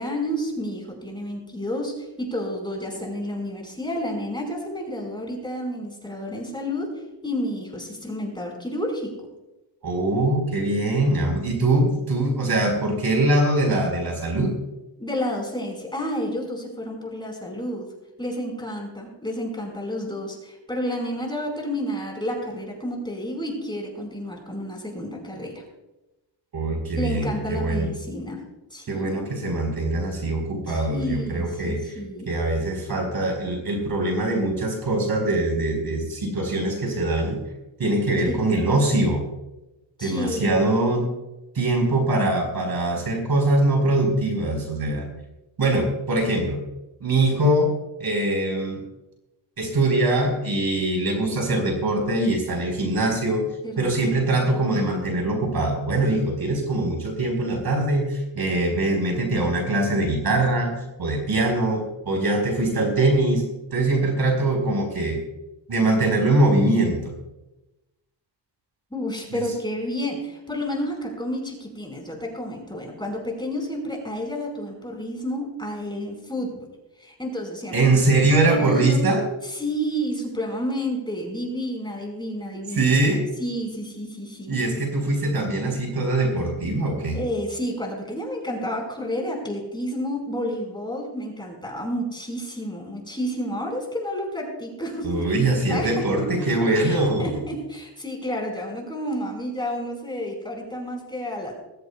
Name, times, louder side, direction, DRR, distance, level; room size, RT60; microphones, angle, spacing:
voice 1, 0.0-6.9 7.2-9.3 15.0-17.9 18.2-25.6 27.0-28.4 28.7-29.2 30.7-32.3 38.3-38.5 40.0-40.7 53.6-54.0 68.9-76.7 77.0-77.9 78.3-79.0 79.4-82.9 83.4-84.6 87.1-95.3 95.7-101.5, equal, 10° left, 1 dB, 5.2 m, -30 dB
voice 2, 9.8-14.5 26.5-27.9 28.9-31.9 32.3-37.4 37.8-39.2 40.0-41.1 41.5-45.1 45.6-46.6 47.0-47.7 48.0-48.8 49.6-53.4 53.8-63.4 63.7-65.2 65.7-67.2 69.3-69.4 77.7-79.2 82.7-83.3 84.5-87.2 95.0-97.4, right 2 dB, 55° right, 2 dB, 4.6 m, -22 dB
21.5 x 15.0 x 2.4 m, 0.97 s
cardioid pair, 100°, 45 cm